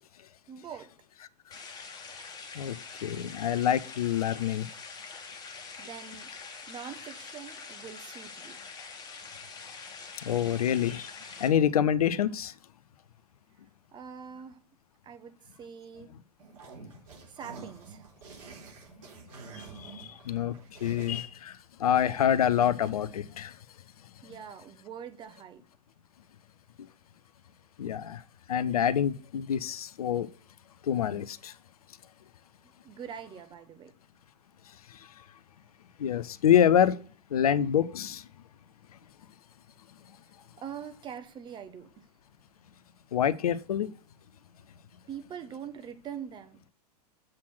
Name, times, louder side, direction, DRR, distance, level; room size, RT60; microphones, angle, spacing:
voice 1, 0.5-0.9 5.8-8.6 13.9-14.6 15.0-16.1 17.3-18.1 24.2-25.6 32.8-33.9 40.6-41.9 45.1-46.6, right 8 dB, 20° right, 0.9 m, -43 dB
sound 1, 1.5-11.5, left 5 dB, 20° left, 1.5 m, -45 dB
voice 2, 3.0-4.7 10.3-11.1 11.4-12.5 19.6-20.5 20.8-23.5 27.8-28.2 28.5-30.3 30.8-31.5 36.0-37.0 37.3-38.2 43.1-43.9, left 9 dB, 65° left, 0.5 m, -26 dB
sound 2, 16.4-21.2, right 4 dB, 55° right, 4.1 m, -48 dB
7.4 x 4.2 x 6.1 m
figure-of-eight pair, 95°, 21 cm